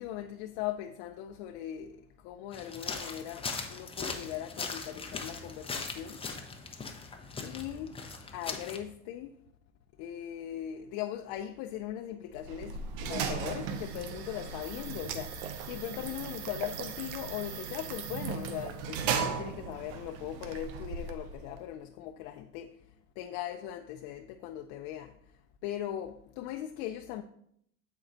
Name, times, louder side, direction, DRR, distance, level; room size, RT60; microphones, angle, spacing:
voice 1, 0.0-6.3 7.4-8.0 8.3-9.4 10.0-27.2, left 11 dB, 70° left, 0.6 m, -39 dB
sound 1, 2.5-8.8, left 4 dB, 15° left, 0.7 m, -40 dB
sound 2, 12.3-21.6, right 6 dB, 85° right, 0.9 m, -37 dB
8.2 x 4.5 x 3.9 m
supercardioid pair, 120°, 41 cm